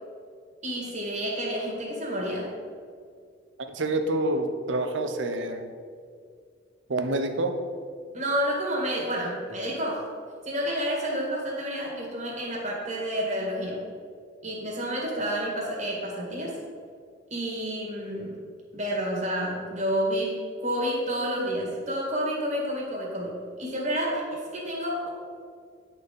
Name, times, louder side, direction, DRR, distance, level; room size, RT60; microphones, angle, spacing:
voice 1, 0.6-2.5 8.1-10.1 10.4-13.8 14.4-16.5 17.3-18.4 18.7-25.1, equal, 35° right, -3 dB, 1.8 m, -29 dB
voice 2, 3.7-5.6 6.9-7.5, right 2 dB, 75° right, 7 dB, 0.7 m, -27 dB
9.7 x 4.1 x 5.3 m, 2.1 s
head